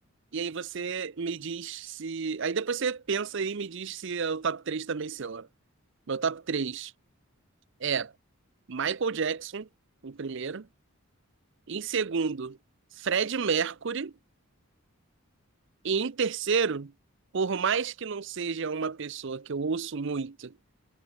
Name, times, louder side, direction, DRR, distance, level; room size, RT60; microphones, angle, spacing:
voice 1, 0.3-5.5 6.1-6.9 7.8-8.1 8.7-9.7 10.0-10.7 11.7-12.6 13.0-14.1 15.8-16.9 17.3-20.5, right 5 dB, 55° right, 0.6 m, -30 dB
head